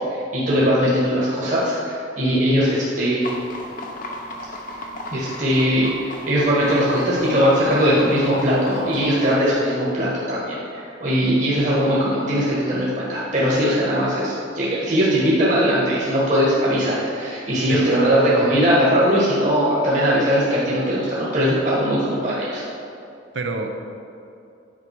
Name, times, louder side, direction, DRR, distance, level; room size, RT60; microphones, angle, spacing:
voice 1, 0.1-3.3 5.1-22.6, equal, 40° right, -7 dB, 1.4 m, -20 dB
sound 1, 3.2-9.5, left 1 dB, 45° left, 0.8 m, -35 dB
voice 2, 17.7-18.5 23.3-23.7, right 3 dB, 75° right, 5 dB, 0.7 m, -30 dB
8.7 x 5.2 x 4.7 m, 2.6 s
head